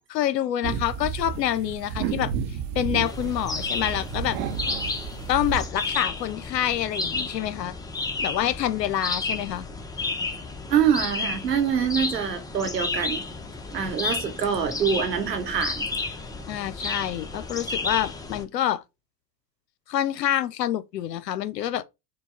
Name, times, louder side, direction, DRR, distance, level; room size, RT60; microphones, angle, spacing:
voice 1, 0.1-2.3 2.8-4.4 5.3-7.8 8.2-9.7 16.5-18.8 19.9-21.8, left 11 dB, 85° left, 0.6 m, -27 dB
sound 1, 0.6-5.7, right 8 dB, 55° right, 0.7 m, -32 dB
sound 2, 3.0-18.4, left 3 dB, 10° left, 0.5 m, -32 dB
voice 2, 10.7-13.2 13.7-15.9, right 7 dB, 90° right, 1.0 m, -25 dB
4.6 x 2.2 x 3.5 m
hypercardioid pair, 85°, 48 cm